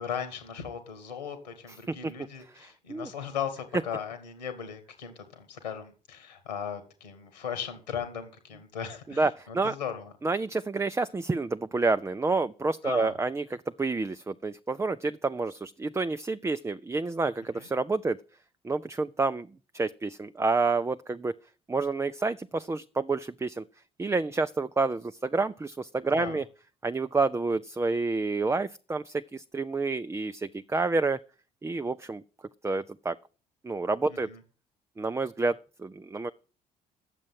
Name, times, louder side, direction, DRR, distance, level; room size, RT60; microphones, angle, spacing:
voice 1, 0.0-10.1 12.8-13.1 17.5-17.7 26.1-26.4 34.1-34.4, left 8 dB, 85° left, 2.1 m, -37 dB
voice 2, 2.5-3.1 9.2-9.7 10.2-13.5 13.8-18.2 18.6-19.5 19.7-21.4 21.7-23.6 24.0-26.4 26.8-31.2 31.6-32.2 32.6-33.2 33.6-34.3 35.0-36.3, right 3 dB, 15° right, 0.5 m, -29 dB
10.5 x 7.5 x 9.0 m
figure-of-eight pair, 50°, 21 cm